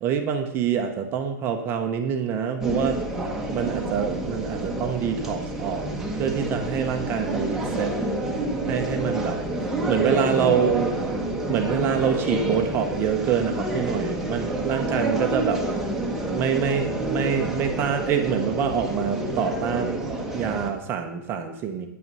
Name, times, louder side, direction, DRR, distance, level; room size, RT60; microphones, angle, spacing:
voice 1, 0.0-3.0 3.5-5.9 6.2-8.0 8.7-9.4 9.9-11.0 11.5-15.6 16.3-21.9, right 7 dB, 20° right, 5 dB, 0.9 m, -26 dB
sound 1, 2.6-20.7, right 1 dB, 5° right, 1.1 m, -28 dB
9.5 x 9.1 x 5.5 m, 0.89 s
hypercardioid pair, 165°, 11 cm